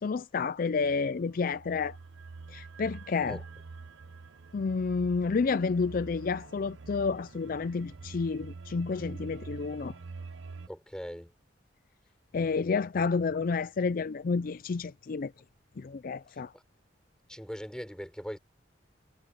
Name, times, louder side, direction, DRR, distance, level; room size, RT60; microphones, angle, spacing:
voice 1, 0.0-2.0 2.5-3.4 4.5-9.9 12.3-15.3 15.8-16.5, left 4 dB, 50° left, 0.4 m, -30 dB
sound 1, 0.8-10.7, right 4 dB, 80° right, 0.8 m, -46 dB
voice 2, 10.7-11.3 17.3-18.4, equal, 5° left, 5.5 m, -40 dB
head